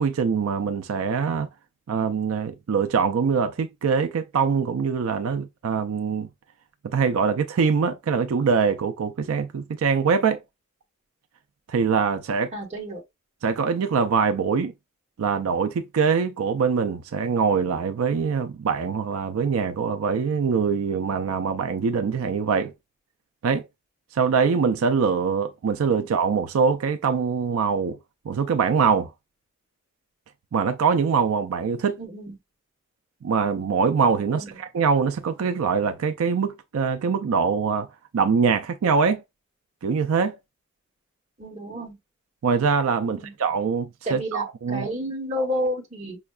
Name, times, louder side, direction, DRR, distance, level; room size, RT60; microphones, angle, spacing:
voice 1, 0.0-1.5 1.9-6.3 6.8-10.4 11.7-12.5 13.4-14.7 15.2-22.7 23.4-23.6 24.1-28.0 28.2-29.1 30.5-32.0 33.2-37.9 38.1-39.2 39.8-40.4 42.4-44.9, right 5 dB, 85° right, 0.4 m, -23 dB
voice 2, 12.5-13.0 32.0-32.3 34.3-34.6 41.4-42.0 43.0-43.3 44.0-46.2, equal, 30° right, 1.1 m, -31 dB
5.5 x 2.2 x 2.3 m
head